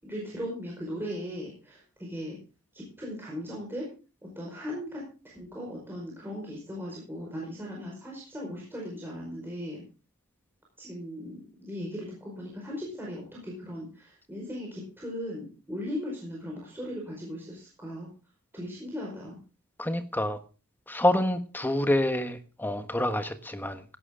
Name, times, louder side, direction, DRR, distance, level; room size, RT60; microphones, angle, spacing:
voice 1, 0.0-2.4 2.7-3.9 4.3-9.8 10.8-18.1 18.5-19.4, equal, 10° right, 4.9 m, -38 dB
voice 2, 19.8-20.4 20.9-23.8, left 1 dB, 10° left, 1.3 m, -27 dB
17.0 x 11.0 x 3.7 m
head